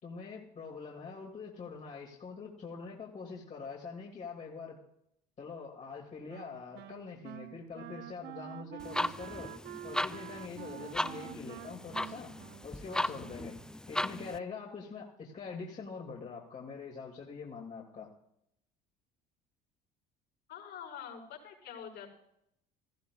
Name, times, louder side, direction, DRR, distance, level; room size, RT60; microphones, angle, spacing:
voice 1, 0.0-4.8 5.4-9.5 9.8-12.3 12.6-13.6 13.9-18.1, left 5 dB, 40° left, -1 dB, 2.5 m, -44 dB
Wind instrument woodwind instrument, 6.3-13.7, right 14 dB, 60° right, 0.6 m, -47 dB
sound 1, 8.8-14.4, left 1 dB, 5° left, 0.3 m, -37 dB
voice 2, 11.1-11.6 13.9-14.2 20.5-22.2, left 6 dB, 65° left, 0 dB, 5.6 m, -47 dB
17.0 x 15.0 x 2.4 m, 0.77 s
hypercardioid pair, 70°, 20 cm